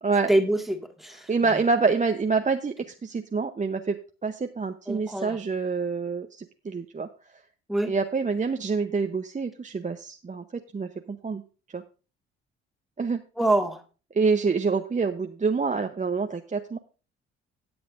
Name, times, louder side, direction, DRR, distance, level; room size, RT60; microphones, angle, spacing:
voice 1, 0.3-1.6 4.9-5.4 7.7-7.9 13.4-13.8, right 1 dB, ahead, 6 dB, 1.9 m, -26 dB
voice 2, 1.3-2.7 3.0-4.0 4.2-7.1 7.9-11.4 11.7-11.8 13.0-13.2 14.2-16.8, right 4 dB, 25° right, 6 dB, 0.8 m, -26 dB
18.0 x 7.9 x 2.5 m, 0.34 s
hypercardioid pair, 45°, 32 cm